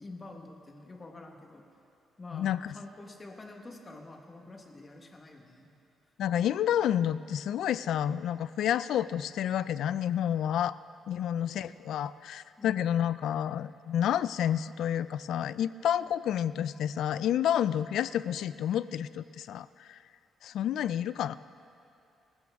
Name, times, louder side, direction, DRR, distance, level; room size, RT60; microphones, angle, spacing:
voice 1, 0.0-1.7 2.2-5.7 11.1-11.5 12.6-12.9, left 2 dB, 20° left, 2 dB, 1.3 m, -47 dB
voice 2, 2.3-2.7 6.2-10.8 11.1-20.0 20.4-21.4, left 10 dB, 65° left, 16 dB, 0.4 m, -29 dB
25.5 x 15.0 x 3.6 m, 2.6 s
cardioid pair, 175°, 0 cm